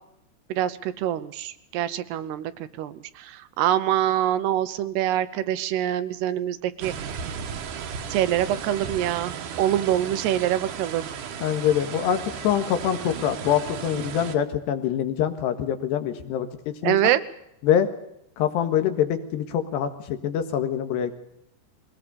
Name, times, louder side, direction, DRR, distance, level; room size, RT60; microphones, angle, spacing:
voice 1, 0.5-7.2 8.1-11.1 16.8-17.2, right 12 dB, 75° right, 12 dB, 2.9 m, -25 dB
sound 1, 6.8-14.4, right 7 dB, 60° right, 2.5 m, -35 dB
voice 2, 11.4-16.5 16.8-17.0 17.6-17.9 18.4-21.1, left 9 dB, 80° left, 8 dB, 3.7 m, -24 dB
22.0 x 19.0 x 7.0 m, 0.80 s
omnidirectional pair, 4.9 m